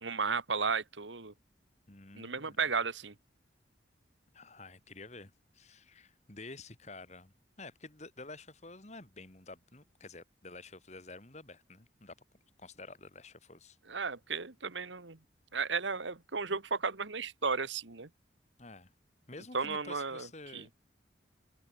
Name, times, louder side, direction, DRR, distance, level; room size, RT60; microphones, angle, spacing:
voice 1, 0.0-1.3 2.1-3.1 13.9-15.2 15.5-18.1 19.5-20.3 20.5-20.6, right 5 dB, 80° right, 1.7 m, -34 dB
voice 2, 1.9-2.7 4.3-12.1 12.6-13.8 18.6-18.9 19.3-20.7, left 3 dB, 35° left, 2.1 m, -50 dB
open air
head